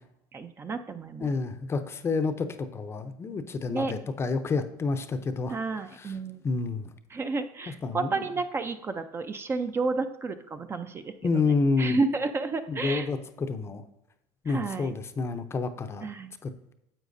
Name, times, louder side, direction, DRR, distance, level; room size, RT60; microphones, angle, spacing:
voice 1, 0.3-1.3 3.7-3.9 5.5-6.5 7.1-11.1 11.4-13.1 14.5-14.9 16.0-16.3, right 3 dB, 25° right, 9 dB, 0.5 m, -31 dB
voice 2, 1.2-5.6 6.0-6.1 6.4-6.9 7.8-8.2 11.2-12.0 12.7-13.8 14.4-16.1 16.4-16.7, left 4 dB, 25° left, 9 dB, 0.6 m, -29 dB
9.8 x 7.4 x 2.6 m, 0.87 s
supercardioid pair, 120°, 11 cm